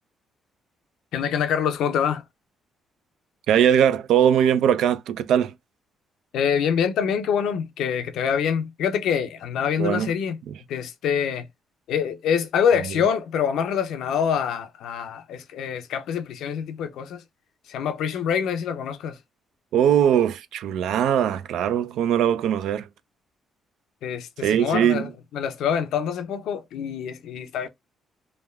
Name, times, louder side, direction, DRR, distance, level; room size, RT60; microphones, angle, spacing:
voice 1, 1.1-2.2 6.3-10.4 10.7-11.5 11.9-17.2 17.7-19.2 24.0-27.7, left 7 dB, 80° left, 0.5 m, -25 dB
voice 2, 3.5-5.5 9.8-10.1 19.7-22.9 24.4-25.1, right 9 dB, 80° right, 0.3 m, -20 dB
3.2 x 2.2 x 2.2 m
cardioid pair, 90°, 0 cm